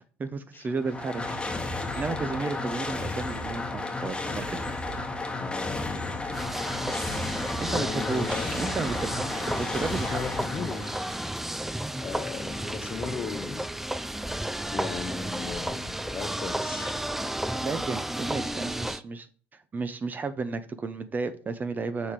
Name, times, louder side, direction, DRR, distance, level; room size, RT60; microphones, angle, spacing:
voice 1, 0.0-1.6 1.9-4.7 7.6-10.2 17.6-19.3 19.7-22.1, right 4 dB, 30° right, 0.7 m, -33 dB
sound 1, 0.7-11.5, left 2 dB, 15° left, 1.3 m, -33 dB
voice 2, 5.3-6.4 7.7-8.6 10.1-11.1 12.0-13.6 14.7-17.0, left 6 dB, 35° left, 0.8 m, -37 dB
sound 2, 6.3-19.0, right 1 dB, 5° right, 0.4 m, -32 dB
7.0 x 3.7 x 4.8 m
hypercardioid pair, 80°, 6 cm